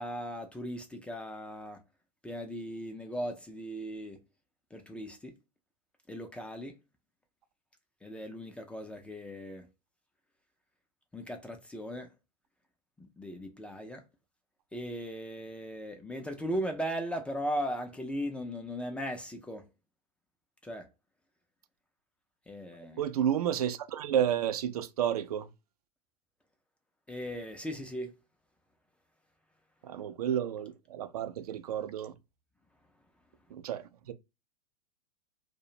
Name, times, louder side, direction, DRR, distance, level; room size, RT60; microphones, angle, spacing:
voice 1, 0.0-1.8 2.2-4.2 4.7-5.3 6.1-6.7 8.0-9.7 11.1-12.1 13.0-14.0 14.7-19.7 20.6-20.9 22.5-23.0 27.1-28.1, equal, 5° left, 0.3 m, -37 dB
voice 2, 23.0-25.5 29.8-32.1 33.5-34.1, right 9 dB, 65° right, 0.4 m, -31 dB
2.4 x 2.0 x 2.7 m
figure-of-eight pair, 100°, 21 cm